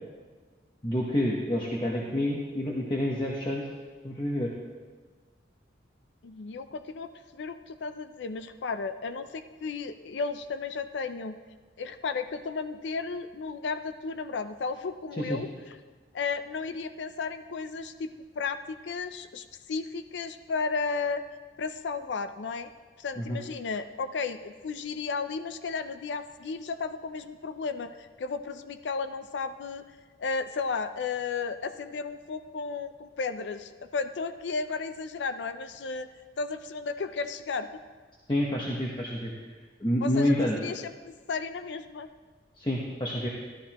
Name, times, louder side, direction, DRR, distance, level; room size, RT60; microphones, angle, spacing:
voice 1, 0.8-3.6 4.0-4.5 15.2-15.4 23.2-23.4 38.3-39.3 39.8-40.6 42.6-43.3, left 1 dB, 25° left, -3 dB, 1.0 m, -28 dB
voice 2, 6.2-11.4 11.8-15.5 16.1-18.1 18.4-21.2 21.6-22.7 23.0-29.8 30.2-36.1 36.4-37.7 40.0-40.3 40.6-42.1, left 4 dB, 85° left, 10 dB, 0.5 m, -34 dB
13.0 x 13.0 x 2.9 m, 1.4 s
head